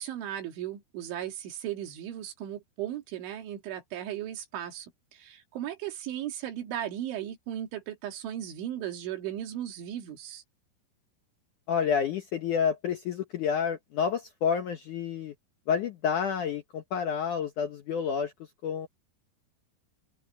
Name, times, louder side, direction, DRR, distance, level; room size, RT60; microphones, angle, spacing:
voice 1, 0.0-10.4, right 11 dB, 90° right, 4.8 m, -36 dB
voice 2, 11.7-15.3 15.7-18.3 18.6-18.9, left 7 dB, 70° left, 1.9 m, -29 dB
open air
omnidirectional pair, 5.2 m